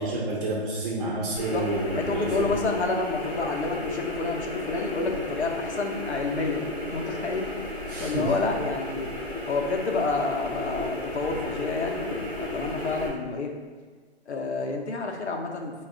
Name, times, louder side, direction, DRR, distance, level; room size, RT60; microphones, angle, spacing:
voice 1, 0.0-2.5 7.9-8.3, right 2 dB, 45° right, -4 dB, 0.8 m, -29 dB
sound 1, 1.4-13.1, left 2 dB, 5° left, 0.4 m, -33 dB
voice 2, 1.9-7.4 7.7-13.5 14.3-15.7, left 3 dB, 85° left, 2 dB, 0.7 m, -29 dB
4.8 x 2.3 x 3.5 m, 1.4 s
figure-of-eight pair, 145°, 33 cm